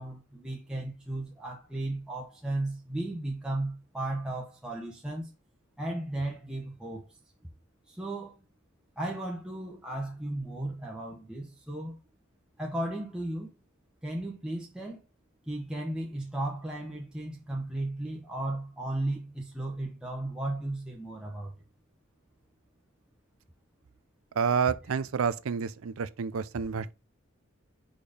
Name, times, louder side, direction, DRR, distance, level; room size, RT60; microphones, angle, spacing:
voice 1, 0.0-5.3 5.8-7.1 7.9-8.4 9.0-12.0 12.6-13.5 14.0-15.0 15.5-21.6, right 1 dB, 5° right, 1.0 m, -35 dB
voice 2, 24.3-26.9, right 6 dB, 85° right, 0.5 m, -29 dB
5.1 x 4.4 x 4.9 m
head